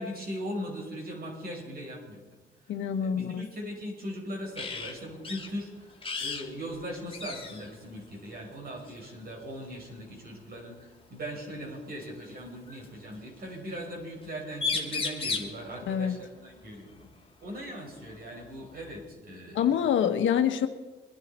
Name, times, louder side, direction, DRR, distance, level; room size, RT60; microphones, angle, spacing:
voice 1, 0.0-2.2 3.0-17.1 17.4-19.9, equal, 50° right, 0 dB, 5.9 m, -39 dB
voice 2, 2.7-3.4 15.9-16.1 19.5-20.7, left 8 dB, 75° left, 7 dB, 1.3 m, -26 dB
sound 1, 4.5-4.9 5.2-5.5 6.0-6.5 6.7-6.8 7.1-7.7 8.9-9.1 10.8-10.9 12.0-12.9 14.2-14.3 14.5-15.6 17.5-17.6 18.0-19.0, left 4 dB, 25° left, 2.4 m, -34 dB
22.5 x 11.0 x 4.4 m, 1.3 s
cardioid pair, 90°, 20 cm